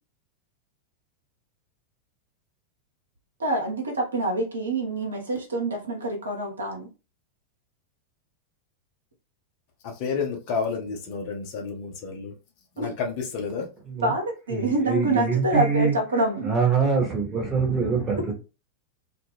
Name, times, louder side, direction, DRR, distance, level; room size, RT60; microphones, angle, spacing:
voice 1, 3.4-6.9 12.8-12.9 14.0-16.5, right 2 dB, 70° right, 0.7 m, -26 dB
voice 2, 10.0-12.3 12.8-13.7, left 5 dB, 45° left, 0.7 m, -30 dB
voice 3, 14.5-16.0 16.4-18.3, right 5 dB, 20° right, 1.0 m, -24 dB
2.2 x 2.2 x 3.3 m
figure-of-eight pair, 90°, 0 cm